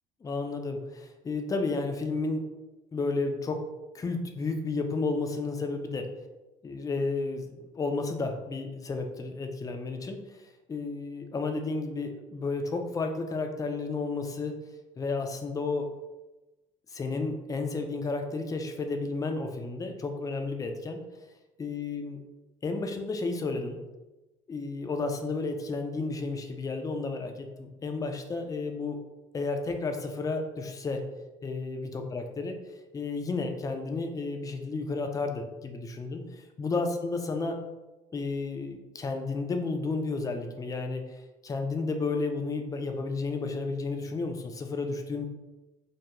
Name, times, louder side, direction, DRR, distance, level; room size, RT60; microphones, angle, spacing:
voice 1, 0.2-2.4 2.9-3.6 3.9-6.1 6.6-14.5 15.0-15.9 16.9-21.0 21.6-22.2 22.6-23.8 24.5-29.0 29.3-31.0 31.4-32.5 32.9-37.5 38.1-45.3, left 3 dB, 20° left, 5 dB, 0.4 m, -32 dB
2.3 x 2.3 x 2.9 m, 1.1 s
hypercardioid pair, 65°, 18 cm